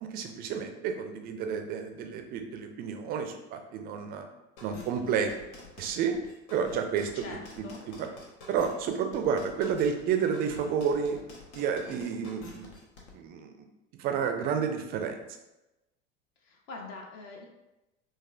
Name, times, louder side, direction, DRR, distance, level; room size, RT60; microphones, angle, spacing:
voice 1, 0.0-4.3 4.6-5.3 5.8-6.1 6.5-7.6 8.0-8.1 8.5-11.2 11.5-12.7 13.1-13.5 14.0-15.2, right 7 dB, 30° right, 5 dB, 0.3 m, -30 dB
sound 1, 4.6-13.1, left 2 dB, 65° left, 0.9 m, -48 dB
voice 2, 7.1-7.8 16.4-17.5, left 3 dB, 45° left, 1 dB, 0.6 m, -44 dB
3.9 x 2.5 x 2.4 m, 0.98 s
figure-of-eight pair, 75°, 36 cm